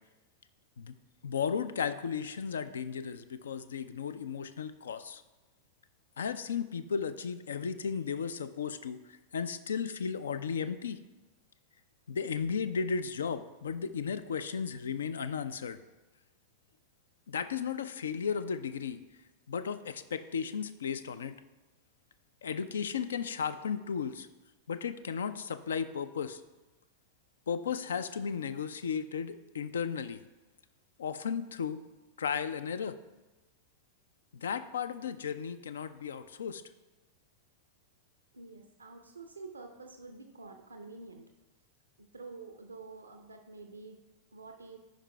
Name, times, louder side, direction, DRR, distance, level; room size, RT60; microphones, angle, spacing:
voice 1, 1.2-5.2 6.2-9.0 9.3-11.0 12.1-15.8 17.3-19.0 19.5-21.3 22.4-24.3 24.7-26.4 27.5-30.2 31.0-31.8 32.2-33.0 34.3-36.6, left 6 dB, 65° left, 12 dB, 0.4 m, -35 dB
voice 2, 38.3-41.3 42.0-44.0 44.3-44.8, right 3 dB, 75° right, 4 dB, 0.5 m, -48 dB
13.5 x 5.2 x 2.2 m, 1.1 s
figure-of-eight pair, 90°, 0 cm